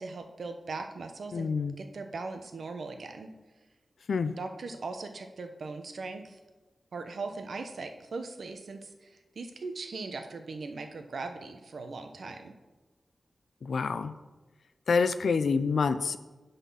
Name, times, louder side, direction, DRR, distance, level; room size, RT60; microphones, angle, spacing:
voice 1, 0.0-1.5 1.8-3.3 4.4-6.4 6.9-12.5, right 3 dB, 65° right, 6 dB, 0.8 m, -39 dB
voice 2, 1.3-1.8 4.1-4.4 13.6-14.1 14.9-16.2, left 5 dB, 75° left, 12 dB, 0.4 m, -27 dB
9.3 x 4.1 x 5.6 m, 1.2 s
wide cardioid pair, 140°, 0 cm